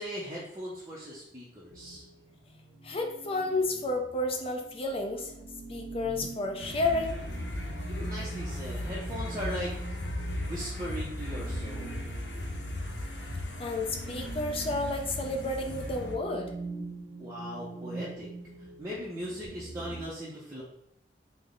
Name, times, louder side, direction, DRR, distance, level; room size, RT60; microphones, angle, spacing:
voice 1, 0.0-2.0 7.6-10.0 10.4-12.0 17.2-18.3 18.8-20.6, equal, 20° right, -7 dB, 0.5 m, -39 dB
sound 1, 1.7-20.0, right 3 dB, 80° right, 0.7 m, -44 dB
voice 2, 2.8-5.3 5.7-7.2 13.6-16.5, left 2 dB, 30° left, 3 dB, 0.4 m, -31 dB
sound 2, 6.6-16.2, left 1 dB, 80° left, 0.6 m, -37 dB
3.3 x 2.0 x 3.7 m, 0.75 s
head